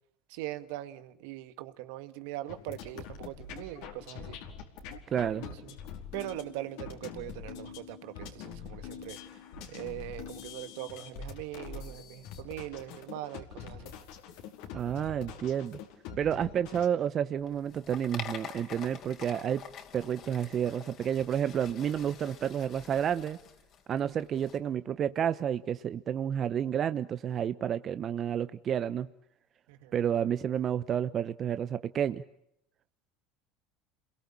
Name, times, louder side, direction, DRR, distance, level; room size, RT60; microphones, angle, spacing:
voice 1, 0.3-4.4 5.4-5.8 6.1-9.2 9.7-13.9 29.7-29.9, right 15 dB, 75° right, 1.9 m, -41 dB
sound 1, 2.5-16.9, left 7 dB, 70° left, 4.7 m, -44 dB
voice 2, 5.1-5.4 14.7-15.8 16.2-19.6 19.9-23.4 23.9-29.1 29.9-32.2, right 9 dB, 40° right, 1.0 m, -30 dB
sound 2, 17.4-24.6, left 8 dB, 50° left, 4.5 m, -46 dB
28.5 x 22.5 x 8.8 m
supercardioid pair, 95°, 0 cm